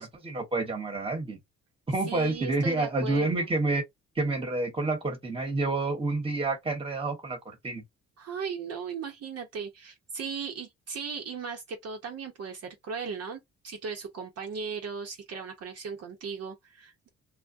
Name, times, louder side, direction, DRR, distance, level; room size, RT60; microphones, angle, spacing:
voice 1, 0.0-1.4 1.9-3.8 4.1-7.8, right 2 dB, 20° right, 1.0 m, -29 dB
voice 2, 2.1-3.5 8.2-17.1, right 5 dB, 55° right, 0.7 m, -37 dB
2.3 x 2.1 x 2.5 m
cardioid pair, 90°, 30 cm